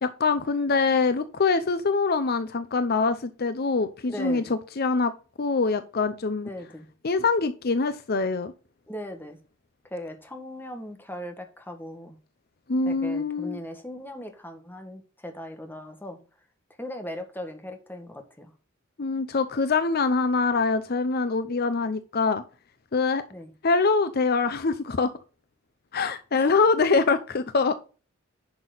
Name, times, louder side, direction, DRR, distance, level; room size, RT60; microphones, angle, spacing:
voice 1, 0.0-5.1 5.4-6.5 7.0-8.5 12.7-13.6 19.0-22.4 22.9-23.2 23.6-25.1 25.9-27.7, left 4 dB, 50° left, 0.7 m, -24 dB
voice 2, 4.1-4.5 6.4-6.9 8.9-9.4 9.9-12.2 12.9-16.2 16.8-18.5 23.3-23.5 26.3-26.5, left 1 dB, 10° left, 1.7 m, -38 dB
10.5 x 6.1 x 4.0 m
head